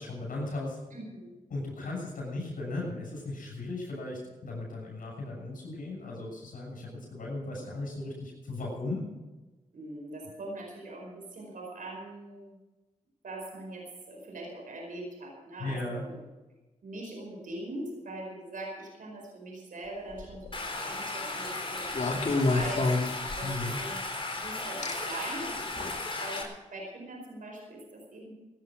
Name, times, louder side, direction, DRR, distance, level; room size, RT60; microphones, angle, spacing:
voice 1, 0.0-0.8 1.5-9.0 15.6-16.0 23.4-23.8, left 2 dB, 85° left, -3 dB, 6.9 m, -36 dB
voice 2, 0.9-1.3 9.7-12.6 13.2-16.3 16.8-24.0 24.3-25.9 26.2-28.3, right 2 dB, 80° right, 0 dB, 4.9 m, -42 dB
sound 1, 20.1-20.6 21.9-23.7 24.8-24.9 25.8-26.0, left 3 dB, 55° left, 2.4 m, -28 dB
Stream, 20.5-26.4, left 2 dB, 40° left, 3.9 m, -35 dB
17.0 x 10.5 x 6.3 m, 1.1 s
cardioid pair, 45°, 14 cm